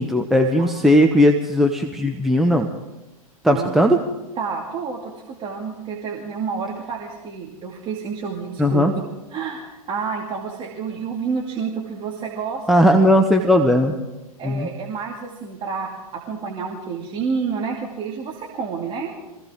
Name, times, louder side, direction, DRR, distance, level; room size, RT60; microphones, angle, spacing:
voice 1, 0.0-2.7 3.4-4.0 8.6-8.9 12.7-14.0 14.4-14.7, equal, ahead, 3 dB, 0.9 m, -17 dB
voice 2, 4.4-8.8 9.3-12.8 14.4-19.1, right 5 dB, 25° right, 0 dB, 2.5 m, -29 dB
24.5 x 16.0 x 3.7 m, 1.0 s
figure-of-eight pair, 100°, 19 cm